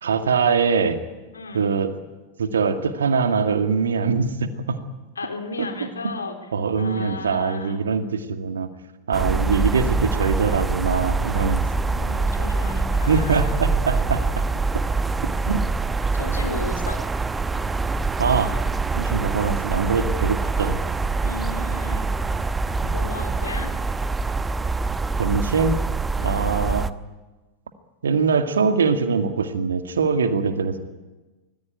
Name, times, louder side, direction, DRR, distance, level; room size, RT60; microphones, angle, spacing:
voice 1, 0.0-1.0 1.5-1.9 2.4-4.8 5.6-5.7 6.5-8.7 9.1-11.6 13.1-14.4 15.5-15.6 18.2-18.5 19.0-20.8 22.8-22.9 25.2-25.8 26.2-26.9 28.0-30.8, right 5 dB, 70° right, 7 dB, 2.2 m, -22 dB
voice 2, 1.3-1.7 5.2-6.4 6.8-7.8 9.2-10.2 11.8-13.6 16.1-17.0 21.2-22.1 22.9-23.7 26.2-26.6, left 3 dB, 75° left, 4 dB, 3.6 m, -34 dB
sound 1, 9.1-26.9, right 3 dB, 10° right, 0.9 m, -24 dB
25.0 x 19.5 x 9.0 m, 1.2 s
figure-of-eight pair, 90°, 0 cm